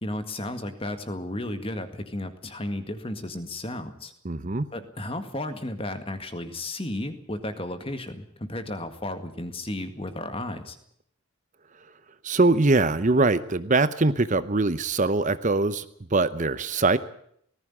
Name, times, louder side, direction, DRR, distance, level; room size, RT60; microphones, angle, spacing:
voice 1, 0.0-4.1 4.7-10.8, left 1 dB, 25° left, 9 dB, 1.9 m, -33 dB
voice 2, 4.2-4.6 12.2-15.8 16.1-17.0, right 3 dB, 35° right, 14 dB, 0.8 m, -22 dB
19.0 x 15.0 x 10.0 m, 0.68 s
head